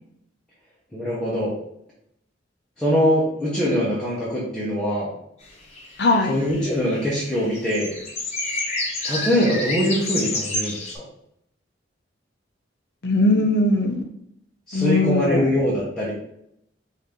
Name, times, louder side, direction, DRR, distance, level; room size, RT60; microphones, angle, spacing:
voice 1, 0.9-1.5 2.8-5.1 6.3-7.9 9.0-11.0 14.7-16.1, equal, 5° left, -8 dB, 1.0 m, -23 dB
sound 1, 5.4-5.5 5.7-11.0, left 2 dB, 35° left, 1.0 m, -29 dB
voice 2, 6.0-6.4 13.0-14.1 14.7-15.4, left 2 dB, 60° left, 3 dB, 0.7 m, -20 dB
5.2 x 2.8 x 3.7 m, 0.75 s
head